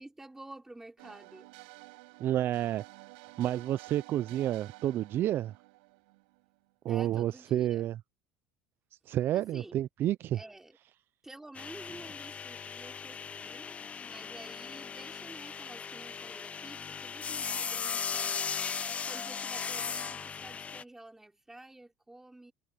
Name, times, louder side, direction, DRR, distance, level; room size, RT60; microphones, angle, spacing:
voice 1, 0.0-1.5 6.9-7.9 9.3-9.8 10.3-10.8 11.2-18.5 19.0-22.5, right 2 dB, 10° right, 4.8 m, -50 dB
sound 1, 1.0-6.7, right 27 dB, 90° right, 5.5 m, -52 dB
voice 2, 2.2-2.8 3.4-5.5 6.8-7.9 9.1-10.4, right 12 dB, 50° right, 0.4 m, -30 dB
sound 2, 11.5-20.8, left 6 dB, 25° left, 0.8 m, -37 dB
supercardioid pair, 115°, 5 cm